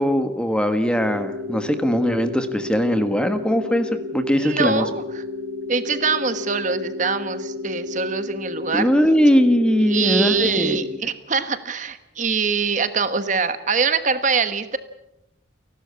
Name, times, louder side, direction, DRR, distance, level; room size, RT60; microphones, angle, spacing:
voice 1, 0.0-4.9 8.7-10.9, equal, 5° left, 9 dB, 1.4 m, -20 dB
sound 1, 1.0-11.0, left 3 dB, 80° right, 5.6 m, -32 dB
voice 2, 4.4-5.2 5.7-8.9 9.9-14.8, right 5 dB, 40° right, 11 dB, 1.2 m, -23 dB
30.0 x 12.5 x 8.3 m, 0.86 s
head